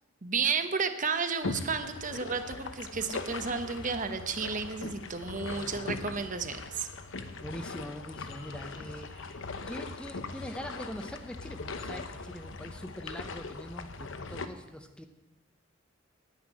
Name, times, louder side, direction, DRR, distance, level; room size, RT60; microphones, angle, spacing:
voice 1, 0.2-6.9, right 5 dB, 40° right, 9 dB, 0.9 m, -32 dB
Applause, 1.3-9.3, left 2 dB, 85° left, 3.3 m, -59 dB
sound 1, 1.4-14.5, left 3 dB, 70° left, 0.9 m, -40 dB
voice 2, 5.4-6.0 7.1-9.4 9.7-15.1, equal, 5° left, 7 dB, 0.7 m, -43 dB
9.4 x 8.1 x 9.5 m, 1.0 s
head